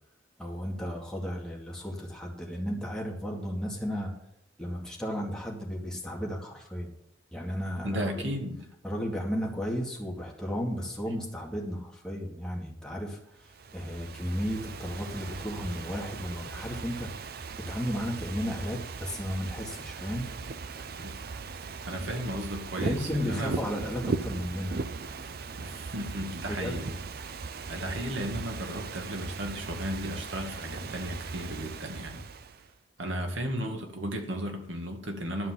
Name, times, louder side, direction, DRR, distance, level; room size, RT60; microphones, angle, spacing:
voice 1, 0.4-4.1 4.6-6.9 7.3-8.3 8.8-17.1 17.6-20.3 22.8-24.7 26.5-26.7, equal, 5° left, -2 dB, 2.2 m, -34 dB
voice 2, 7.8-8.6 21.0-21.1 21.9-23.5 25.6-27.0 27.7-32.2 33.0-35.5, equal, 80° right, 3 dB, 2.1 m, -34 dB
Ocean / Fireworks, 13.4-32.7, right 4 dB, 50° right, 0.5 m, -38 dB
12.0 x 5.7 x 7.4 m, 0.79 s
head